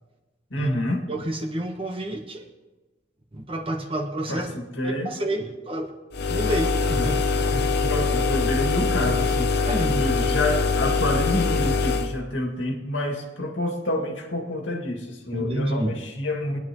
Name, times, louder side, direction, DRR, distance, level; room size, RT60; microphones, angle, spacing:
voice 1, 0.5-1.1 4.3-5.1 7.0-7.2 7.5-16.6, left 1 dB, 85° left, 2 dB, 2.1 m, -28 dB
voice 2, 1.1-2.5 3.3-4.5 4.8-5.9 6.3-7.2 9.6-10.0 15.3-15.9, right 1 dB, 30° right, 2 dB, 1.1 m, -29 dB
sound 1, 6.1-12.1, left 4 dB, 60° left, 0.8 m, -23 dB
23.5 x 9.8 x 3.1 m, 1.2 s
head